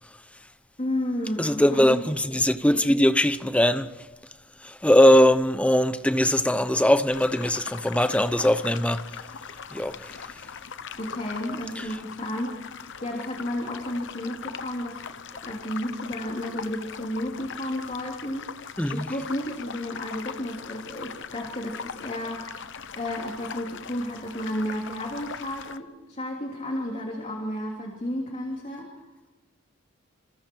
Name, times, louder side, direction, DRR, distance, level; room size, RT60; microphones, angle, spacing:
voice 1, 0.8-2.0 11.0-15.0 15.4-28.9, left 1 dB, 30° left, 3.1 m, -32 dB
voice 2, 1.4-3.9 4.6-9.0 9.7-10.2 11.8-11.9 18.8-19.1, left 1 dB, 5° left, 0.8 m, -21 dB
sound 1, 7.1-25.8, left 6 dB, 60° left, 0.9 m, -40 dB
27.5 x 27.5 x 4.6 m
head